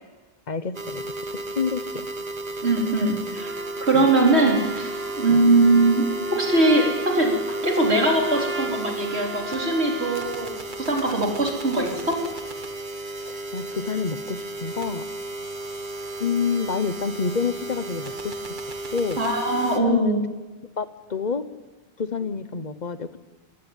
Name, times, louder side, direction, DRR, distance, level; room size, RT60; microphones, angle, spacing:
voice 1, 0.5-1.0 1.5-2.0 3.9-4.1 5.3-5.4 13.2-15.0 16.2-18.4 18.9-19.2 19.8-20.2 20.8-21.4 22.0-23.2, left 5 dB, 45° left, 13 dB, 1.1 m, -28 dB
sound 1, 0.7-19.8, right 2 dB, 50° right, 1.7 m, -33 dB
voice 2, 2.6-3.5 3.8-4.9 5.2-6.0 6.3-7.3 7.6-10.5 10.8-12.2 19.2-20.2, right 2 dB, 85° right, 0 dB, 4.3 m, -21 dB
Trumpet, 3.3-10.6, right 1 dB, 10° right, 1.6 m, -35 dB
21.5 x 17.5 x 9.1 m, 1.2 s
omnidirectional pair, 1.1 m